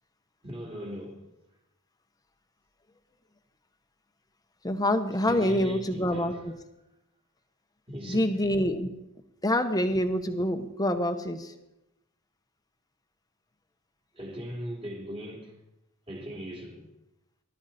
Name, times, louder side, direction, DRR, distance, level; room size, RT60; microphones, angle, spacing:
voice 1, 0.4-1.2 5.3-6.4 7.9-8.4 14.1-15.6 16.1-16.9, equal, 25° right, 3.3 m, -39 dB
voice 2, 4.6-6.5 8.1-8.9 9.4-11.5, left 1 dB, 20° left, 1.1 m, -26 dB
19.5 x 12.5 x 4.3 m
head